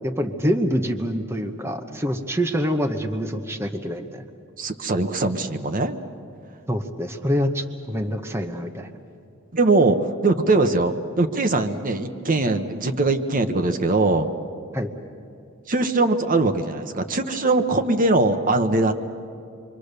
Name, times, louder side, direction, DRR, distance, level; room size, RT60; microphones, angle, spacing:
voice 1, 0.0-4.2 6.7-8.9 14.7-14.9, equal, 10° right, 5 dB, 1.0 m, -26 dB
voice 2, 4.6-6.0 9.5-10.0 10.2-14.3 15.7-18.9, right 2 dB, 40° right, 7 dB, 1.1 m, -21 dB
27.0 x 24.0 x 6.7 m, 2.6 s
head